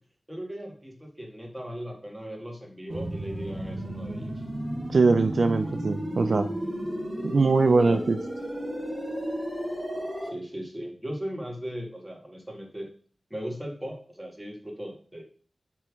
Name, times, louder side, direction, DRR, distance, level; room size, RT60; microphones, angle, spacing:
voice 1, 0.3-4.4 7.8-8.0 10.3-12.9 13.3-15.2, equal, 10° right, 0 dB, 2.1 m, -38 dB
sound 1, 2.9-10.3, equal, 40° right, 4.1 m, -33 dB
voice 2, 4.9-6.5 7.2-8.2, right 3 dB, 70° right, 9 dB, 0.5 m, -22 dB
7.5 x 3.5 x 6.2 m, 0.43 s
wide cardioid pair, 70°, 0 cm